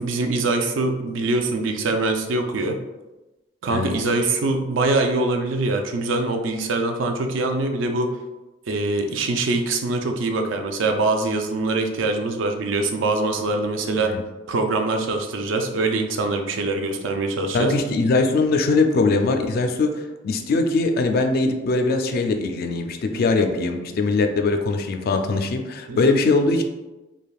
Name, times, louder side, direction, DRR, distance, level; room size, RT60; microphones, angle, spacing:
voice 1, 0.0-2.8 3.6-8.1 8.7-14.1 14.5-17.7 23.1-24.0 25.9-26.3, right 2 dB, 80° right, 4 dB, 0.4 m, -24 dB
voice 2, 17.5-26.6, left 3 dB, 55° left, 5 dB, 0.3 m, -21 dB
3.3 x 2.5 x 2.3 m, 1.1 s
head